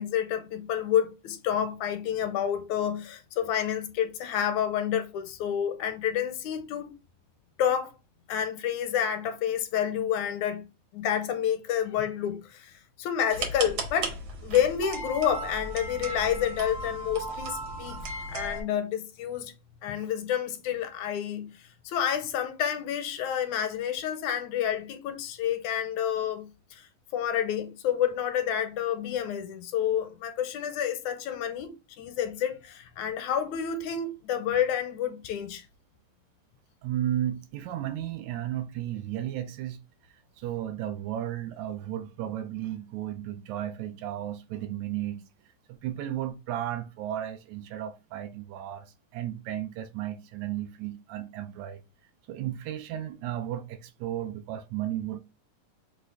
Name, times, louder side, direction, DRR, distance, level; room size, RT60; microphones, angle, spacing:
voice 1, 0.0-6.9 7.6-7.9 8.3-10.7 10.9-14.2 14.4-18.0 18.3-19.5 19.8-35.7, left 9 dB, 85° left, 2.0 m, -29 dB
sound 1, 13.3-18.6, right 2 dB, 60° right, 1.3 m, -35 dB
voice 2, 36.8-39.8 40.1-45.2 45.7-51.8 52.3-55.2, right 12 dB, 80° right, 1.8 m, -34 dB
6.1 x 2.4 x 3.4 m
omnidirectional pair, 3.4 m